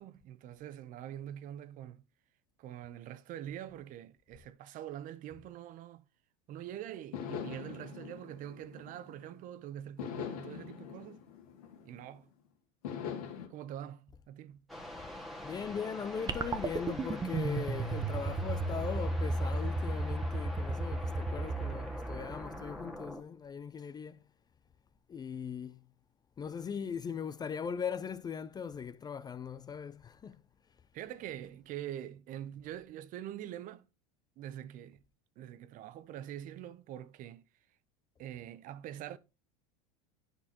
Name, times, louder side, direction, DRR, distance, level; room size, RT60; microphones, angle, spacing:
voice 1, 0.0-2.0 2.6-6.0 6.5-11.2 11.8-12.3 13.5-14.6 30.9-33.9 34.4-35.0 35.4-37.4 38.2-39.2, right 11 dB, 45° right, 0.7 m, -44 dB
sound 1, 6.5-6.6 7.1-9.4 10.0-12.2 12.8-13.5, left 8 dB, 90° left, 2.3 m, -42 dB
sound 2, 14.7-23.2, left 1 dB, ahead, 1.8 m, -45 dB
voice 2, 15.4-24.2 25.1-25.8 26.4-30.4, left 7 dB, 20° left, 0.4 m, -39 dB
sound 3, 16.3-22.8, right 2 dB, 20° right, 0.9 m, -34 dB
10.0 x 6.3 x 2.9 m
supercardioid pair, 110°, 19 cm